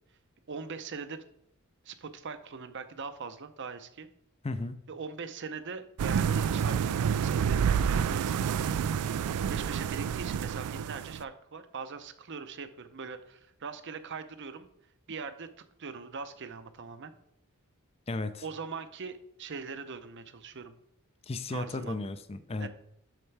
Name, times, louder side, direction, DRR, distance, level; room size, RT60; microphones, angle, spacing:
voice 1, 0.5-1.2 1.8-4.1 4.9-8.8 9.5-14.7 15.1-15.5 15.8-17.1 18.4-20.7 21.5-22.0 22.6-22.7, right 5 dB, 55° right, 10 dB, 0.7 m, -41 dB
voice 2, 4.4-4.8 18.1-18.4 21.3-22.7, left 2 dB, 25° left, 12 dB, 0.5 m, -34 dB
sound 1, 6.0-11.2, right 7 dB, 85° right, 0.3 m, -28 dB
12.5 x 4.5 x 3.3 m, 0.76 s
head